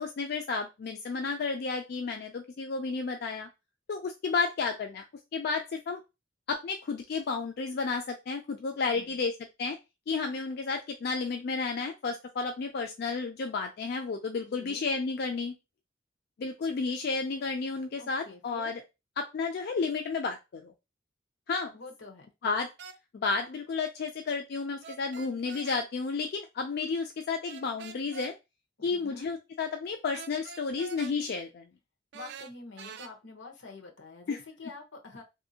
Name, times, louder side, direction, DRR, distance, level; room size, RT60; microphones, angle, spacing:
voice 1, 0.0-3.5 3.9-5.0 5.3-6.0 6.5-9.3 9.6-9.8 10.1-15.5 16.4-18.8 19.2-20.7 21.5-21.7 22.4-22.7 23.1-28.3 28.8-31.6 34.3-34.4, left 4 dB, 55° left, 5 dB, 0.4 m, -32 dB
voice 2, 8.9-9.2 14.4-14.8 18.0-18.7 21.7-22.3 28.8-29.3 32.1-35.2, left 3 dB, 90° left, 2 dB, 0.9 m, -47 dB
sound 1, 22.8-23.0 24.8-25.8 27.5-28.3 30.1-31.2 32.1-33.1, right 5 dB, 60° right, 0.4 m, -45 dB
3.2 x 2.6 x 2.7 m, 0.25 s
head